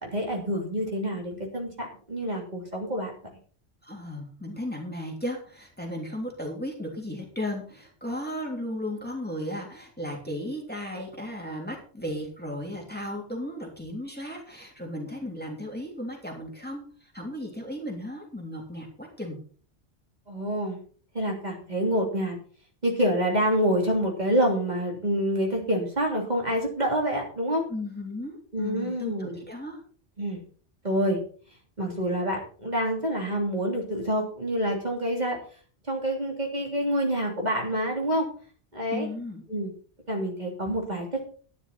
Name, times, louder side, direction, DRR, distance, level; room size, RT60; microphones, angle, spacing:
voice 1, 0.0-3.1 20.3-20.8 21.1-22.4 22.8-27.6 28.5-29.4 30.2-30.4 30.8-31.2 31.8-35.4 35.9-38.3 38.7-39.1 39.5-39.7 40.1-41.3, equal, 35° right, -1 dB, 3.3 m, -27 dB
voice 2, 3.8-19.4 27.7-29.8 38.9-39.4, left 1 dB, 10° left, 0 dB, 3.0 m, -35 dB
12.0 x 10.5 x 4.3 m, 0.43 s
omnidirectional pair, 1.2 m